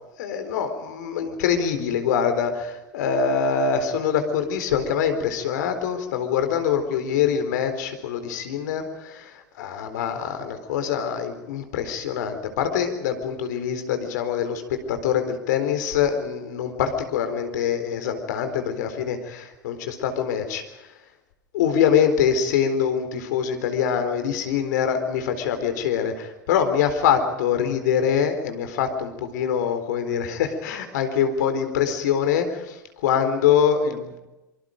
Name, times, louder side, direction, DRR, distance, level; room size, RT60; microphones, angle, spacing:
voice 1, 0.2-9.3 9.6-14.6 14.9-20.6 21.5-32.8 33.0-34.2, left 8 dB, 65° left, 8 dB, 4.1 m, -24 dB
26.5 x 24.5 x 5.2 m, 0.98 s
hypercardioid pair, 80°, 10 cm